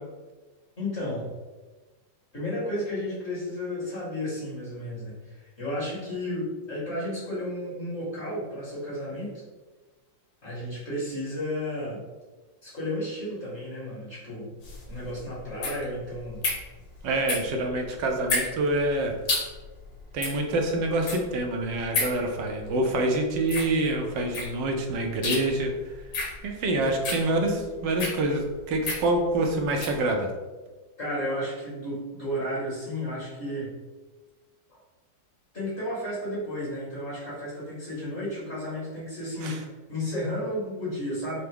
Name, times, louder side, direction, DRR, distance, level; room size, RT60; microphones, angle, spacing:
voice 1, 0.8-1.3 2.3-9.4 10.4-12.0 12.6-14.5 14.9-16.4 31.0-33.7 35.5-41.4, left 1 dB, 40° left, -8 dB, 1.4 m, -33 dB
sound 1, 14.6-30.0, left 3 dB, 90° left, 1.7 m, -33 dB
voice 2, 17.0-19.1 20.1-25.7 26.4-30.3 39.4-39.6, right 2 dB, 80° right, 3 dB, 1.3 m, -26 dB
5.7 x 2.1 x 3.3 m, 1.3 s
omnidirectional pair, 2.0 m